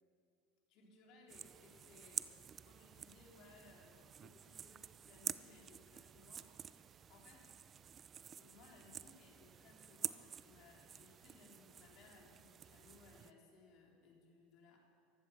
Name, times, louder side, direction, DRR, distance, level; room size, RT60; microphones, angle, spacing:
voice 1, 0.7-2.3 2.6-7.5 8.4-14.8, left 3 dB, 60° left, -1 dB, 3.8 m, -64 dB
sound 1, 1.3-13.3, right 8 dB, 35° right, 0.5 m, -49 dB
15.0 x 11.5 x 6.0 m, 2.3 s
supercardioid pair, 105°, 0 cm